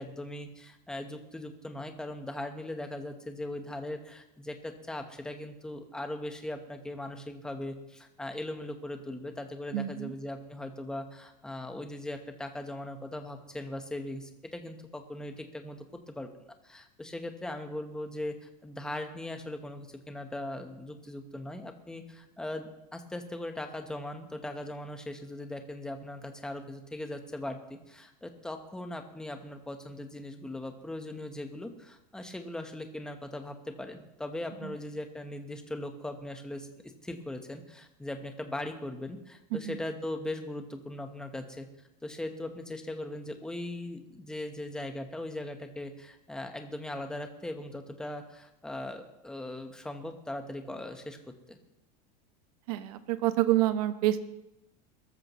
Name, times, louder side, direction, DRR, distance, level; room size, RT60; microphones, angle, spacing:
voice 1, 0.0-16.3 16.6-36.7 37.0-41.7 42.0-51.2 51.5-51.6, left 1 dB, 5° left, 5 dB, 1.0 m, -39 dB
voice 2, 9.7-10.1 34.6-34.7 39.5-39.8 52.7-54.2, right 14 dB, 65° right, 11 dB, 1.1 m, -28 dB
21.5 x 13.5 x 3.1 m, 0.88 s
supercardioid pair, 170°, 21 cm